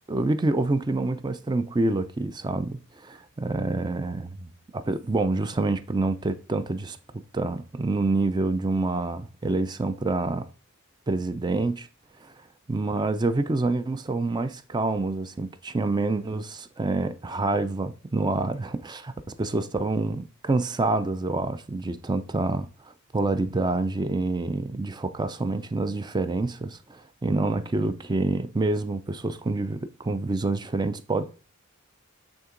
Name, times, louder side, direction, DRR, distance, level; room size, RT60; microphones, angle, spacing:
voice 1, 0.1-10.5 11.1-11.9 12.2-12.3 12.7-22.7 23.1-31.2, right 2 dB, 20° right, 0.4 m, -27 dB
8.7 x 3.6 x 3.8 m
head